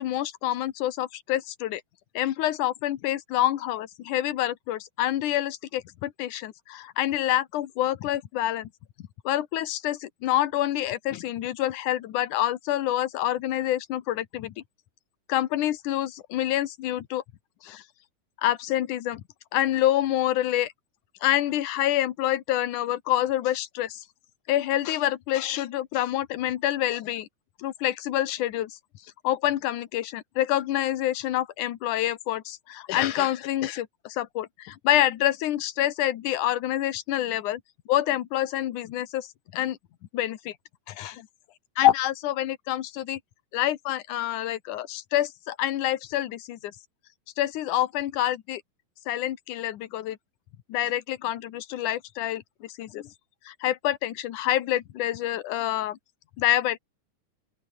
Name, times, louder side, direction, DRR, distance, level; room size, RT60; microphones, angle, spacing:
voice 1, 0.0-1.8 2.1-8.7 9.2-14.5 15.3-17.2 17.6-17.8 18.4-19.2 19.5-20.7 21.2-24.0 24.5-27.3 27.6-28.7 29.2-37.6 37.9-39.3 39.5-39.8 40.1-40.5 40.9-41.3 41.8-43.2 43.5-46.7 47.4-48.6 49.1-50.2 50.7-53.1 53.5-56.0 56.4-56.8, left 13 dB, 80° left, 2.8 m, -27 dB
open air
omnidirectional pair, 3.5 m